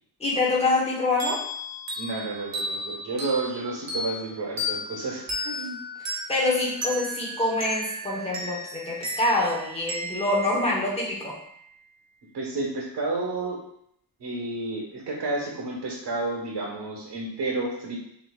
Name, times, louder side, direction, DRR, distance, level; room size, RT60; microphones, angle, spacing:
voice 1, 0.2-1.4 5.5-5.7 6.3-11.3, left 2 dB, 15° left, -4 dB, 1.1 m, -25 dB
sound 1, 1.2-11.5, left 1 dB, 40° right, 0.9 m, -35 dB
voice 2, 1.9-5.5 12.3-13.6 14.2-17.9, right 2 dB, 70° right, -2 dB, 1.4 m, -31 dB
6.6 x 3.0 x 2.4 m, 0.71 s
wide cardioid pair, 175°, 42 cm